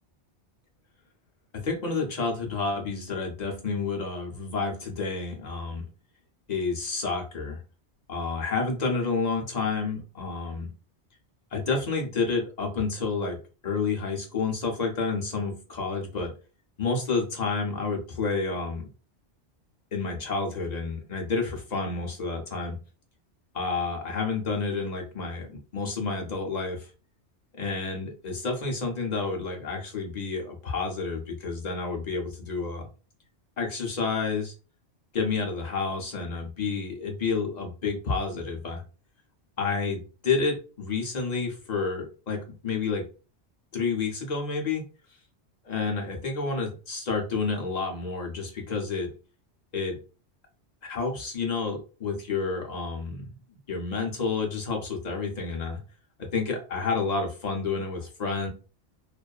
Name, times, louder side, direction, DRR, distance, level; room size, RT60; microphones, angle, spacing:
voice 1, 1.6-5.8 6.5-7.6 8.1-10.7 11.5-13.4 13.6-16.3 16.8-18.9 19.9-22.8 23.5-25.5 25.7-26.9 27.5-32.9 33.6-34.5 35.1-38.8 39.6-43.1 43.7-44.8 45.6-49.1 49.7-50.0 50.8-53.4 53.7-55.8 56.2-58.5, left 4 dB, 45° left, 1 dB, 0.6 m, -29 dB
2.5 x 2.4 x 2.2 m, 0.35 s
omnidirectional pair, 1.2 m